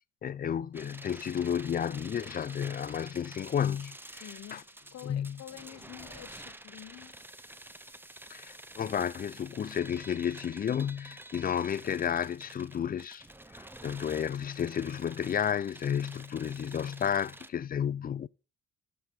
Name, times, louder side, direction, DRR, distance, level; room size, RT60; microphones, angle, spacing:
voice 1, 0.2-4.6 5.0-5.4 8.3-13.3 13.5-18.3, left 8 dB, 30° left, 0.4 m, -32 dB
sound 1, 0.7-17.5, right 1 dB, 5° right, 0.6 m, -49 dB
voice 2, 4.2-4.7 4.9-7.1, left 12 dB, 60° left, 0.8 m, -48 dB
13.0 x 4.9 x 5.4 m
cardioid pair, 90°, 30 cm